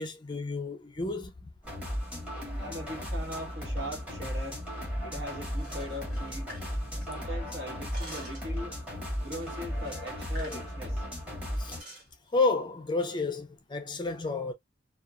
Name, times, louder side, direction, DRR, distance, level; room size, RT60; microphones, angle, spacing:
voice 1, 0.0-1.3 10.4-10.6 11.6-11.7 12.3-14.5, left 3 dB, 25° left, 0.5 m, -30 dB
sound 1, 1.6-11.8, equal, 5° right, 1.4 m, -35 dB
voice 2, 2.6-4.6 5.0-6.5 7.0-8.7 9.2-11.0, equal, 60° right, 1.3 m, -40 dB
sound 2, 5.5-7.4 7.7-8.6 9.3-10.6 10.9-11.1 11.5-12.1, equal, 45° right, 1.4 m, -48 dB
2.7 x 2.3 x 2.4 m
head